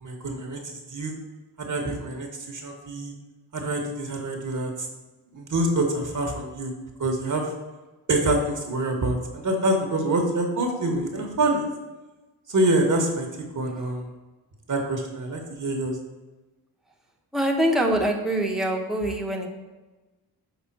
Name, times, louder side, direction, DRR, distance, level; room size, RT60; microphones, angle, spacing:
voice 1, 0.0-1.1 1.6-3.1 3.5-4.9 5.3-6.7 7.0-7.5 8.1-11.7 12.5-13.3 13.5-14.1 14.7-16.0, right 1 dB, 50° right, 2 dB, 1.1 m, -26 dB
voice 2, 17.3-19.5, right 1 dB, ahead, 0 dB, 1.0 m, -24 dB
6.1 x 3.6 x 5.9 m, 1.2 s
cardioid pair, 95°, 40 cm